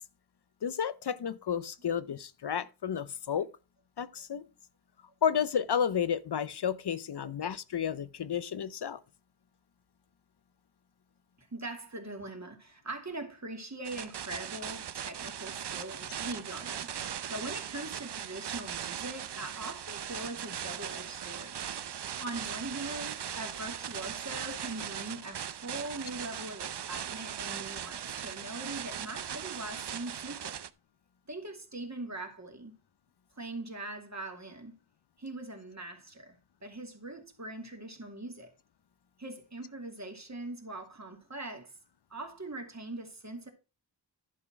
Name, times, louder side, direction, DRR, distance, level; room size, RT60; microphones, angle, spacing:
voice 1, 0.6-3.5 4.0-4.5 5.2-9.0, left 8 dB, 70° left, 0.6 m, -31 dB
voice 2, 11.4-16.9 17.3-21.6 22.2-30.6 31.3-32.7 33.4-34.7 35.2-38.5 39.2-41.7 42.1-43.5, right 2 dB, 40° right, 2.5 m, -41 dB
sound 1, 13.8-30.7, right 9 dB, 75° right, 0.6 m, -39 dB
11.0 x 4.2 x 5.9 m
wide cardioid pair, 55°, 42 cm